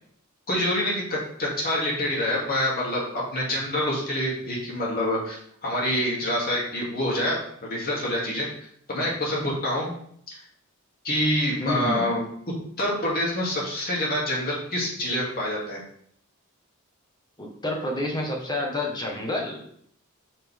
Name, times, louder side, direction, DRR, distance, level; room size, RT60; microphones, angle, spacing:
voice 1, 0.5-8.5 8.9-9.9 10.3-10.4 11.0-12.2 12.8-15.8, left 1 dB, 45° left, -4 dB, 2.6 m, -26 dB
voice 2, 11.6-12.1 17.4-19.6, left 1 dB, 20° left, 0 dB, 1.5 m, -29 dB
6.9 x 5.8 x 3.7 m, 0.66 s
head